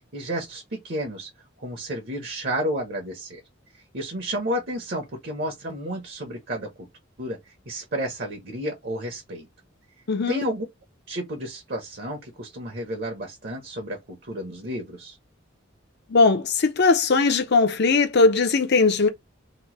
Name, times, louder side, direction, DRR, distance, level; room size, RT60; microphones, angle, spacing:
voice 1, 0.1-1.3 1.6-3.4 3.9-6.7 7.2-7.4 7.7-9.5 10.3-10.6 11.1-15.2, equal, 50° right, 0.9 m, -31 dB
voice 2, 10.1-10.4 16.1-19.1, left 4 dB, 55° left, 0.6 m, -19 dB
3.0 x 2.2 x 3.0 m
head